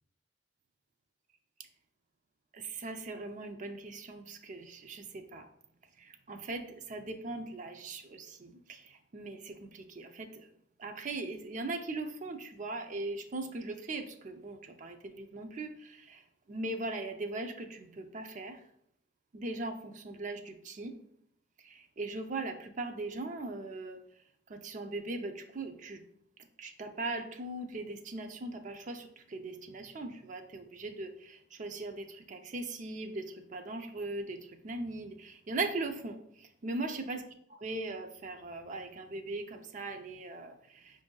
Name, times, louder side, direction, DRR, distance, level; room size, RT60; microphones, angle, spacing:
voice 1, 2.5-5.5 6.0-10.5 10.8-18.6 19.3-21.0 21.6-24.0 24.5-26.0 26.6-37.2 37.5-41.0, right 2 dB, 40° right, 6 dB, 0.4 m, -40 dB
5.2 x 2.6 x 3.7 m, 0.68 s
head